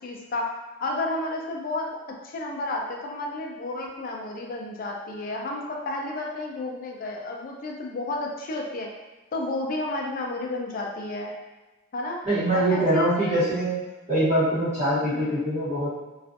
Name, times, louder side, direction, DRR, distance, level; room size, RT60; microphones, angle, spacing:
voice 1, 0.0-0.5 0.8-2.0 2.2-8.9 9.3-11.3 11.9-12.2 12.5-13.4 15.1-15.5, left 2 dB, 45° left, 0 dB, 0.4 m, -31 dB
voice 2, 12.2-13.8 14.1-15.9, right 1 dB, 35° right, -10 dB, 1.1 m, -23 dB
2.4 x 2.3 x 2.5 m, 1.1 s
head